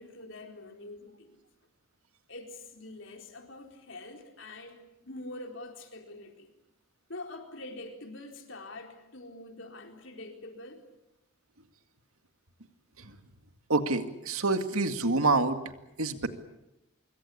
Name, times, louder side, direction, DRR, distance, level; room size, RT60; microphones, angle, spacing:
voice 1, 0.0-1.4 2.3-4.8 5.0-6.5 7.1-10.8, left 2 dB, 60° left, 3 dB, 4.2 m, -45 dB
voice 2, 13.7-15.6 16.0-16.3, right 3 dB, 80° right, 8 dB, 2.1 m, -27 dB
25.5 x 23.5 x 8.5 m, 0.90 s
head